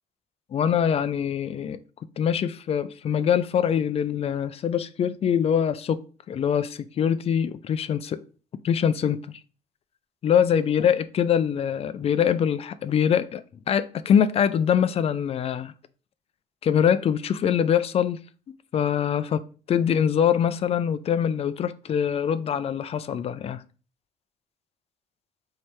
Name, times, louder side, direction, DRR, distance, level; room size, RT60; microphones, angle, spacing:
voice 1, 0.5-1.8 2.2-8.2 8.6-9.2 10.2-13.4 13.7-15.7 16.6-18.2 18.7-23.6, left 8 dB, 35° left, 0.3 m, -23 dB
3.2 x 2.8 x 4.5 m
cardioid pair, 110°, 17 cm